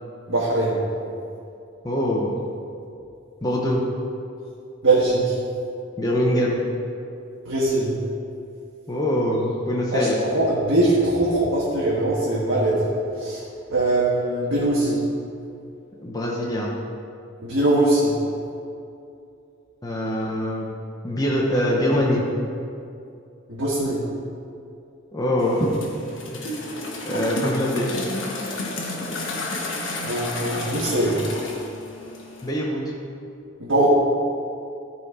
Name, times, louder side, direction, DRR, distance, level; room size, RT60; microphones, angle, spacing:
voice 1, 0.3-0.9 4.8-5.4 7.4-7.9 9.9-12.9 13.2-15.0 17.4-18.1 23.5-24.1 30.0-31.3 33.6-33.9, right 2 dB, 70° right, -7 dB, 1.6 m, -21 dB
voice 2, 1.8-2.3 3.4-3.8 6.0-6.6 8.9-10.2 16.0-16.7 19.8-20.7 21.0-22.3 25.1-25.7 26.3-26.6 27.0-28.0 32.4-32.9, equal, 20° left, -3 dB, 0.9 m, -23 dB
sound 1, 25.4-32.5, left 2 dB, 65° left, 1.3 m, -31 dB
13.0 x 4.6 x 4.9 m, 2.6 s
head